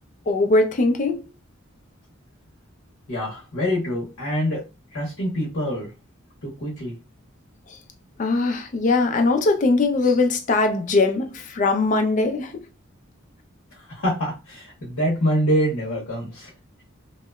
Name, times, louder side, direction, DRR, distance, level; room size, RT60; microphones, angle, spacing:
voice 1, 0.3-1.2 8.2-12.6, left 3 dB, 35° left, 0.3 m, -21 dB
voice 2, 3.1-4.6 4.9-5.9 6.4-7.0 13.7-16.5, equal, 75° left, 0.7 m, -25 dB
2.7 x 2.1 x 2.2 m
head